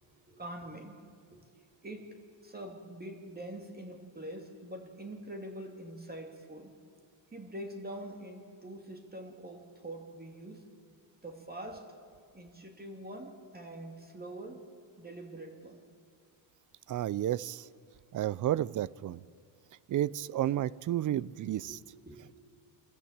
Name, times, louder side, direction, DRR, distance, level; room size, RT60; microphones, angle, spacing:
voice 1, 0.1-1.0 1.3-1.4 1.8-6.7 7.3-10.6 11.2-11.9 12.3-14.6 15.0-15.8 21.6-22.4, right 1 dB, 20° right, 3 dB, 2.5 m, -44 dB
voice 2, 16.9-17.7 18.1-19.2 19.9-21.8, right 12 dB, 45° right, 22 dB, 0.5 m, -31 dB
25.0 x 14.5 x 8.8 m, 2.2 s
cardioid pair, 115°, 47 cm